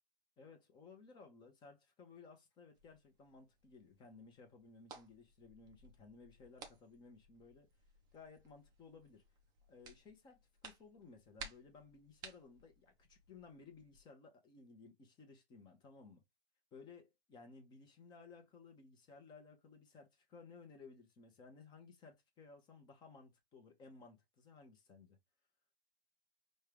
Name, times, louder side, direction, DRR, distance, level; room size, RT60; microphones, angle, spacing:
voice 1, 0.4-7.7 8.1-9.2 9.7-16.2 16.7-25.2, left 4 dB, 15° left, 0.9 m, -58 dB
sound 1, 2.7-14.0, right 4 dB, 15° right, 0.6 m, -58 dB
5.3 x 2.5 x 3.4 m
hypercardioid pair, 140°, 31 cm